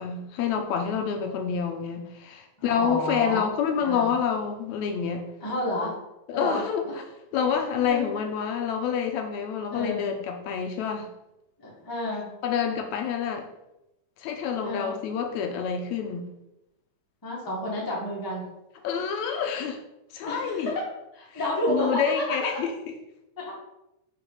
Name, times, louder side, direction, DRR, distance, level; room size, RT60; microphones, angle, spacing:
voice 1, 0.0-5.3 6.3-6.8 7.3-11.1 12.4-13.5 14.2-16.2 18.8-19.8 20.1-20.7 21.7-22.7, left 7 dB, 80° left, 4 dB, 2.0 m, -27 dB
voice 2, 2.6-3.5 3.8-4.1 5.4-6.0 6.3-6.6 7.5-8.1 9.7-10.1 11.6-12.3 14.6-14.9 17.2-18.5 20.2-20.8 21.1-22.6 23.4-23.5, equal, 10° left, -5 dB, 1.2 m, -30 dB
5.9 x 4.3 x 5.6 m, 0.90 s
omnidirectional pair, 3.4 m